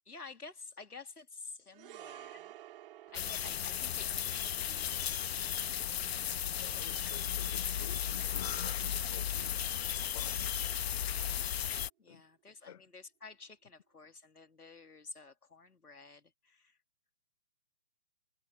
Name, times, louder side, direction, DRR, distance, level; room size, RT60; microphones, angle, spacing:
voice 1, 0.1-2.5 3.1-5.9 12.0-16.8, left 4 dB, 75° left, 3.1 m, -51 dB
sound 1, 1.7-10.2 10.5-10.7, right 13 dB, 35° right, 4.1 m, -55 dB
sound 2, 3.1-11.9, left 9 dB, 45° left, 1.4 m, -35 dB
voice 2, 6.6-10.6 11.0-11.3 12.1-12.2 12.7-12.9, left 9 dB, 25° left, 0.6 m, -51 dB
figure-of-eight pair, 130°, 45 cm